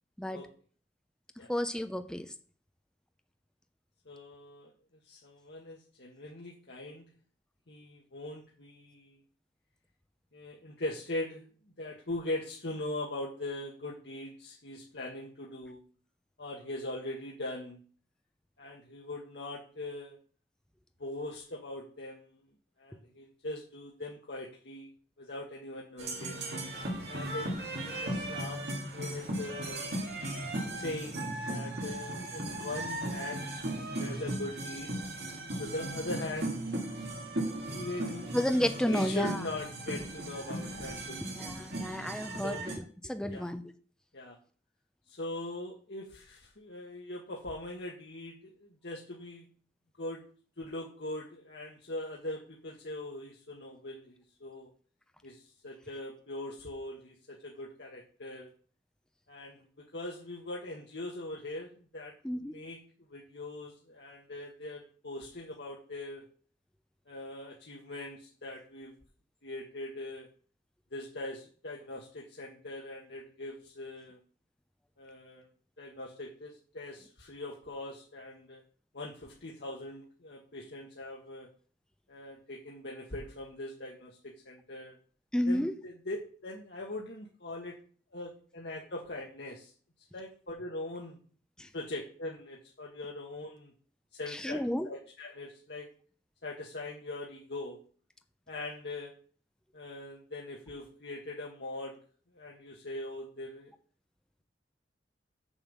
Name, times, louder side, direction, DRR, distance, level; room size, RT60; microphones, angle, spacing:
voice 1, 1.5-2.3 38.3-39.4 41.2-43.6 62.2-62.5 85.3-85.7 91.6-91.7 94.3-94.9, equal, 5° left, 8 dB, 0.6 m, -31 dB
voice 2, 4.0-4.7 5.0-7.1 7.7-9.2 10.3-11.5 11.8-15.8 16.4-17.8 18.6-20.2 21.0-22.4 22.8-24.9 25.2-26.4 27.1-27.5 27.8-30.0 30.7-33.5 34.0-34.9 35.6-36.7 37.7-38.3 38.9-41.4 42.4-42.6 43.3-43.5 44.1-44.3 45.1-49.4 50.0-50.2 50.6-54.1 54.4-54.7 55.2-58.5 59.3-59.6 59.9-62.1 62.4-62.8 63.1-66.2 67.1-68.9 69.4-70.3 70.9-74.2 75.0-75.5 75.8-78.6 78.9-81.5 82.1-85.0 85.5-87.7 88.1-89.7 90.1-91.2 91.7-93.7 94.2-95.9 96.4-97.8 98.5-99.1 99.7-101.9 102.3-103.7, left 2 dB, 70° left, -2 dB, 1.5 m, -41 dB
sound 1, 26.0-42.8, right 1 dB, 65° right, 2.3 m, -37 dB
7.1 x 5.4 x 7.4 m, 0.43 s
head